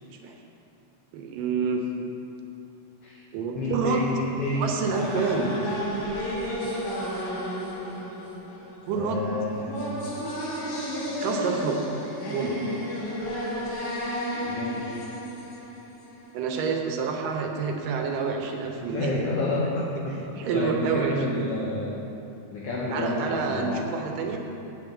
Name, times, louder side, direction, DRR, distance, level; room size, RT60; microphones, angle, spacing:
voice 1, 1.1-1.8 3.3-4.0 4.5-5.5 8.9-9.2 11.2-11.8 12.3-12.6 16.3-19.1 20.4-21.5 22.9-24.4, right 5 dB, 85° right, 2 dB, 2.6 m, -28 dB
voice 2, 3.5-4.7 8.9-9.7 14.5-15.0 18.8-22.0 22.5-23.9, left 2 dB, 65° left, -4 dB, 1.7 m, -29 dB
sound 1, 4.5-16.3, equal, 90° left, 3.6 m, -32 dB
8.4 x 6.2 x 8.1 m, 2.8 s
omnidirectional pair, 3.8 m